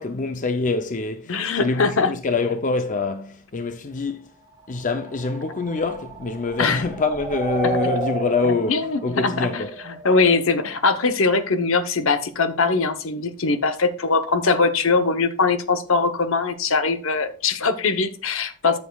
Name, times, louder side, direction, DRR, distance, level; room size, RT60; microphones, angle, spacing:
voice 1, 0.0-4.3 4.7-9.8, left 3 dB, 35° left, 0.5 m, -25 dB
voice 2, 1.3-2.1 6.6-6.8 8.7-18.8, left 4 dB, 65° left, 0.9 m, -21 dB
sound 1, 4.6-10.4, right 3 dB, 15° right, 1.4 m, -33 dB
12.5 x 7.2 x 2.3 m
head